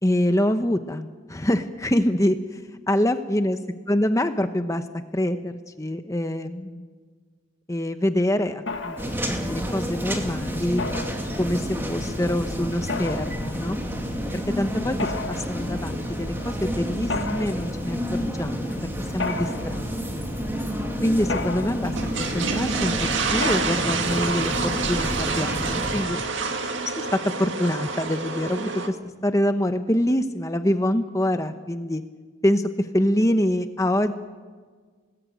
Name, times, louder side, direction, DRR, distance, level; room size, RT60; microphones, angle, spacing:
voice 1, 0.0-2.6 2.9-3.6 3.9-4.8 5.1-6.9 7.7-10.8 11.4-13.8 14.3-15.0 15.3-18.8 19.1-19.9 20.1-20.2 21.0-21.9 22.2-26.2 26.9-29.0 29.2-32.0 32.4-34.1, left 1 dB, 15° left, 8 dB, 0.9 m, -25 dB
Mechanisms, 8.7-25.4, left 3 dB, 65° left, 1.6 m, -37 dB
sound 1, 9.0-26.0, equal, 10° right, 2.4 m, -30 dB
sound 2, 21.8-28.9, right 4 dB, 65° right, 1.9 m, -28 dB
27.0 x 19.5 x 9.2 m, 1.5 s
head